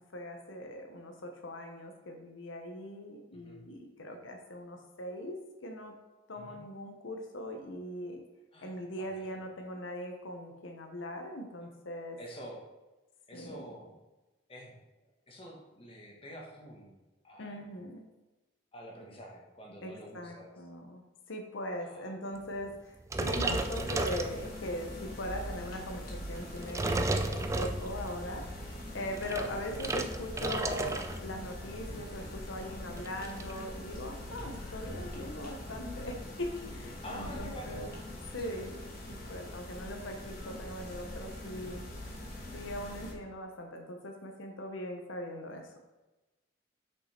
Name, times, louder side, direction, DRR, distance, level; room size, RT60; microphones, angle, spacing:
voice 1, 0.1-5.9 6.3-8.2 8.6-12.2 13.3-13.7 17.4-18.0 19.8-37.9 38.3-38.7 39.1-41.8 42.5-45.7, left 1 dB, 90° left, 3 dB, 0.9 m, -41 dB
voice 2, 8.5-9.6 12.2-12.6 13.3-14.0 14.5-14.8 15.3-17.8 18.7-20.5 21.8-22.2 29.5-29.6 34.3-34.5 37.0-37.9 41.6-41.9, equal, 30° left, -1 dB, 1.3 m, -48 dB
sound 1, 23.1-24.8 25.3-25.6 26.4-28.2 29.0-31.3 31.5-31.8 32.1-32.2 32.5-33.6, right 2 dB, 15° right, 0.4 m, -33 dB
sound 2, 23.2-43.1, left 1 dB, 50° left, 1.7 m, -43 dB
6.2 x 5.5 x 4.3 m, 1.1 s
head